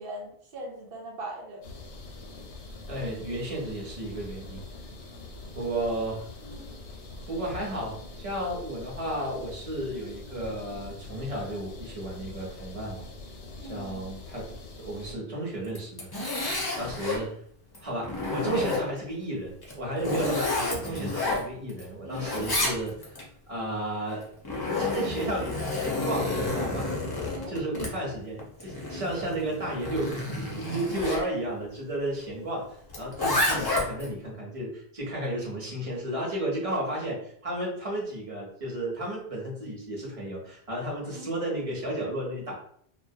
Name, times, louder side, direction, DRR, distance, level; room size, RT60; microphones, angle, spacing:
voice 1, 0.0-1.6 6.4-6.7 13.6-14.0 22.0-22.5 27.2-27.5 41.0-41.3, right 1 dB, 60° right, 0 dB, 0.9 m, -40 dB
sound 1, 1.6-15.2, left 2 dB, 90° left, 0.9 m, -44 dB
voice 2, 2.9-4.6 5.5-6.3 7.3-13.0 13.7-14.5 14.8-16.1 16.8-17.4 17.8-22.9 23.5-24.3 24.8-26.9 27.5-42.5, right 1 dB, 35° right, -3 dB, 0.9 m, -33 dB
Zipper (clothing), 15.6-17.2 17.7-19.1 19.6-21.8 22.1-23.2 24.1-31.2 32.9-34.1, left 2 dB, 35° left, 0.4 m, -30 dB
2.3 x 2.0 x 2.7 m, 0.64 s
omnidirectional pair, 1.1 m